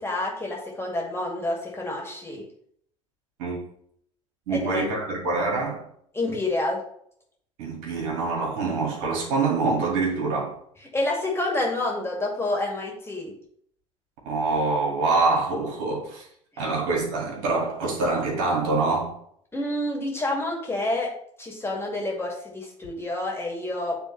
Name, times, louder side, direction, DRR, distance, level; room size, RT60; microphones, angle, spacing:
voice 1, 0.0-2.4 4.5-4.8 6.1-6.8 10.9-13.3 16.6-16.7 19.5-21.1 21.4-24.0, left 2 dB, 15° left, 2.2 m, -28 dB
voice 2, 4.5-5.9 7.6-10.6 14.3-16.3 16.6-19.2, right 3 dB, 65° right, 2.2 m, -25 dB
9.2 x 3.5 x 3.2 m
hypercardioid pair, 70°, 17 cm